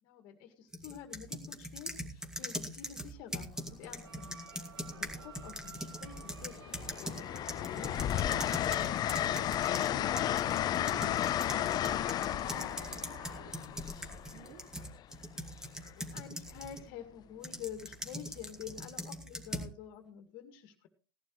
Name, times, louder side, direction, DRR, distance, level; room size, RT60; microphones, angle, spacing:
voice 1, 0.0-4.5 4.8-7.3 7.6-8.1 15.8-20.9, left 9 dB, 50° left, 6 dB, 2.1 m, -48 dB
sound 1, 0.7-9.9 10.2-16.8 17.4-19.7, equal, 5° right, 2.4 m, -42 dB
Train, 3.5-3.7 5.0-5.7 6.1-14.9 16.5-16.7, left 11 dB, 35° left, 0.7 m, -33 dB
sound 2, 3.9-13.5, right 5 dB, 90° right, 1.3 m, -54 dB
voice 2, 8.3-14.8, right 4 dB, 55° right, 6 dB, 3.6 m, -55 dB
17.5 x 11.5 x 3.2 m, 0.35 s
hypercardioid pair, 105°, 12 cm